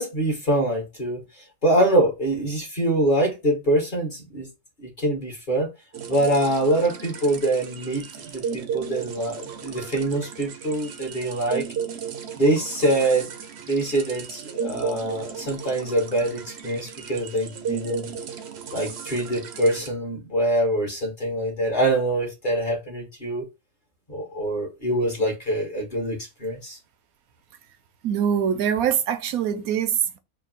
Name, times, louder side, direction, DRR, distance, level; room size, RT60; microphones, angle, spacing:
voice 1, 0.0-4.5 4.8-5.7 6.1-8.0 8.3-11.7 12.4-13.3 13.7-18.1 18.7-23.5 24.1-26.8, right 1 dB, 35° left, 1.4 m, -24 dB
sound 1, 5.9-19.9, right 7 dB, 55° right, 0.8 m, -35 dB
voice 2, 28.0-30.2, right 8 dB, 80° right, 1.1 m, -23 dB
3.6 x 2.7 x 3.9 m
omnidirectional pair, 1.5 m